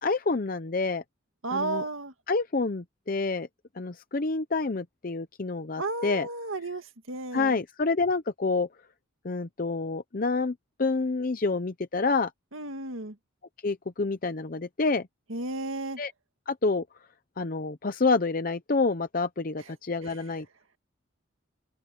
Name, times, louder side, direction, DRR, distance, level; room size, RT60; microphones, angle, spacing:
voice 1, 0.0-1.0 1.5-1.8 2.3-3.5 3.8-6.3 7.3-8.7 9.2-12.3 13.6-15.1 16.0-16.1 16.5-16.8 17.4-20.5, left 3 dB, 45° left, 0.7 m, -28 dB
voice 2, 1.4-2.1 5.8-7.6 12.5-13.2 15.3-16.0 19.6-19.7 20.0-20.2, right 2 dB, 90° right, 2.0 m, -33 dB
open air
head